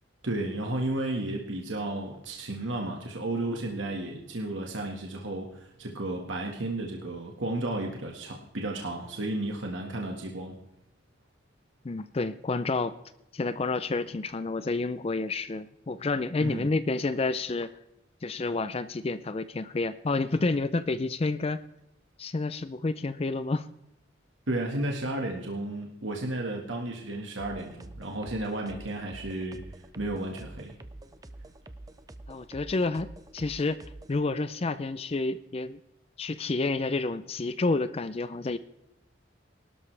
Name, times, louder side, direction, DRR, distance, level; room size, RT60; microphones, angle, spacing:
voice 1, 0.2-10.5 16.4-16.7 24.5-30.8, right 2 dB, 85° right, 1 dB, 1.7 m, -33 dB
voice 2, 11.8-13.0 13.3-17.7 18.2-21.6 22.2-23.7 32.3-33.1 33.3-33.8 34.1-35.8 36.2-38.6, left 3 dB, 30° left, 13 dB, 0.4 m, -29 dB
sound 1, 27.4-34.2, right 2 dB, 20° right, 0.6 m, -46 dB
21.5 x 12.5 x 3.4 m, 0.86 s
head